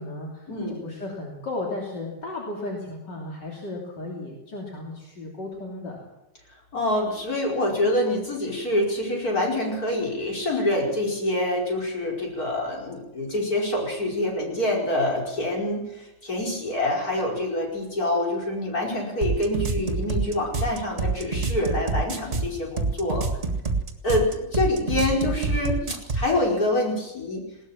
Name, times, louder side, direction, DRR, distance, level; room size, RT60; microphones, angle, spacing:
voice 1, 0.0-6.1, left 2 dB, 70° left, -1 dB, 3.8 m, -35 dB
voice 2, 6.7-23.3 24.0-27.4, left 1 dB, 50° left, -1 dB, 5.7 m, -26 dB
sound 1, 19.2-26.3, right 3 dB, 35° right, 2.1 m, -26 dB
20.5 x 18.0 x 7.4 m, 0.96 s
omnidirectional pair, 2.0 m